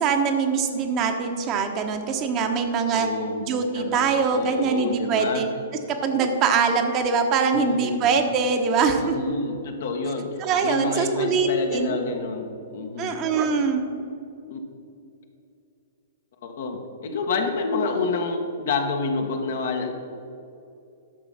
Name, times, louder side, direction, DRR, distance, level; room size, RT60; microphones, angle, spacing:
voice 1, 0.0-3.1 3.4-5.5 6.0-9.1 10.4-12.0 13.0-13.9, right 5 dB, 35° right, 5 dB, 1.1 m, -23 dB
voice 2, 2.9-3.4 3.7-4.0 4.3-5.5 7.5-8.1 8.9-13.2 14.5-14.6 16.4-19.9, left 3 dB, 65° left, 4 dB, 1.4 m, -28 dB
11.0 x 6.2 x 5.8 m, 2.6 s
hypercardioid pair, 115°, 0 cm